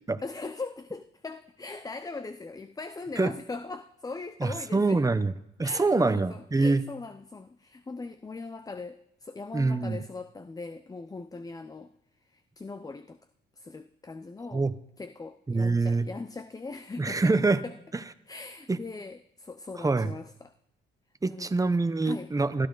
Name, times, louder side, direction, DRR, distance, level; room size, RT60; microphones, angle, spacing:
voice 1, 0.2-5.0 5.6-11.9 12.3-13.2 13.6-14.6 15.0-17.4 17.6-17.7 18.3-20.5 21.2-21.5 22.0-22.3, left 3 dB, 20° left, 11 dB, 0.6 m, -40 dB
voice 2, 4.4-5.3 5.6-6.8 9.5-10.0 14.5-14.7 15.5-16.1 17.0-17.6 17.9-18.0 18.7-18.8 19.8-20.1 21.2-22.7, right 3 dB, 15° right, 12 dB, 0.9 m, -25 dB
21.0 x 13.0 x 4.0 m, 0.81 s
cardioid pair, 90°, 20 cm